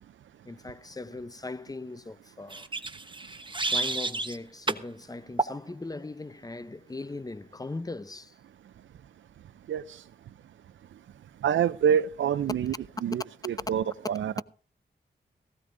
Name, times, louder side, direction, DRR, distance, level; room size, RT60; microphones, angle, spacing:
voice 1, 0.4-2.7 3.6-8.4, left 3 dB, 20° left, 0.7 m, -39 dB
sound 1, 2.5-4.4 4.7-4.9 5.4-5.6, right 3 dB, 25° right, 1.2 m, -30 dB
voice 2, 9.7-10.0 11.4-12.7 13.0-14.4, right 9 dB, 85° right, 0.5 m, -27 dB
17.5 x 15.5 x 2.6 m
cardioid pair, 40°, 19 cm